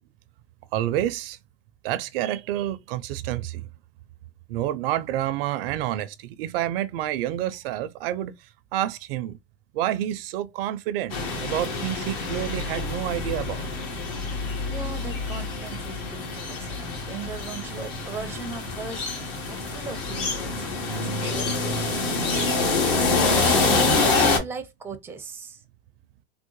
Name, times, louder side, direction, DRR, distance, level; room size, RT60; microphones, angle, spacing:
voice 1, 0.7-1.4 1.8-3.7 4.5-9.4 9.7-13.7, right 12 dB, 65° right, 0.5 m, -29 dB
sound 1, 11.1-24.4, left 3 dB, 65° left, 1.5 m, -26 dB
voice 2, 14.4-22.1 22.4-25.6, right 5 dB, 5° right, 0.5 m, -39 dB
3.6 x 2.0 x 3.0 m
hypercardioid pair, 110°, 32 cm